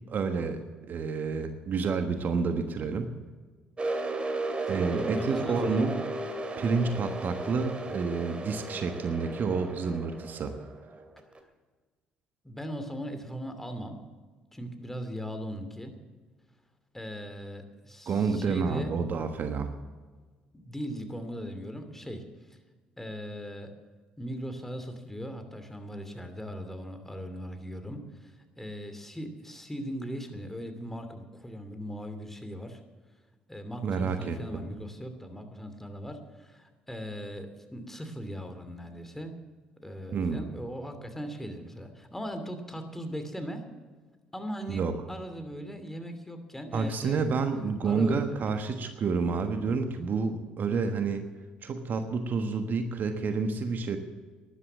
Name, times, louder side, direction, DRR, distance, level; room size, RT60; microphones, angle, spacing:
voice 1, 0.1-3.2 4.7-6.0 6.6-10.7 18.1-19.7 33.8-34.4 40.1-40.4 44.7-44.9 46.7-51.2 51.6-54.0, right 4 dB, 50° right, 7 dB, 1.3 m, -29 dB
sound 1, 3.8-11.4, right 2 dB, 30° right, 2.4 m, -35 dB
voice 2, 4.7-5.8 12.4-14.0 14.5-15.9 16.9-18.9 20.5-22.3 23.0-23.7 24.2-32.8 33.5-39.3 39.8-43.7 44.3-47.3 47.8-48.4, equal, 10° left, 7 dB, 2.8 m, -39 dB
13.0 x 11.0 x 7.3 m, 1.4 s
hypercardioid pair, 55°, 4 cm